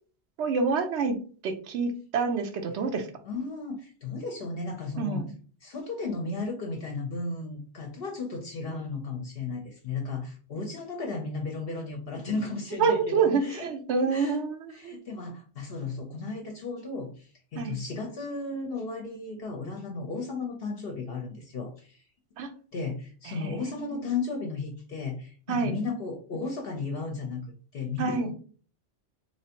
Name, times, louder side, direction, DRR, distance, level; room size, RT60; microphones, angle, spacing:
voice 1, 0.4-1.2 1.4-3.1 5.0-5.3 12.8-14.9 17.6-17.8 22.4-22.5 23.3-24.0 25.5-25.8 28.0-28.3, right 4 dB, 85° right, 6 dB, 0.9 m, -27 dB
voice 2, 3.2-5.3 5.6-13.7 14.1-14.4 14.7-22.0 22.7-27.5 27.7-28.3, left 3 dB, 60° left, 1 dB, 0.8 m, -34 dB
3.3 x 3.0 x 2.8 m, 0.41 s
omnidirectional pair, 1.1 m